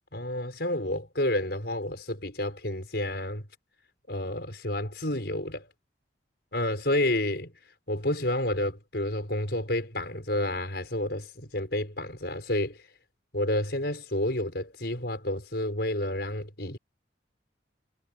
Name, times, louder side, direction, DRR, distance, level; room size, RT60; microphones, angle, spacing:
voice 1, 0.1-3.5 4.1-5.7 6.5-7.5 7.9-12.8 13.3-16.8, left 1 dB, 60° left, 6.9 m, -30 dB
head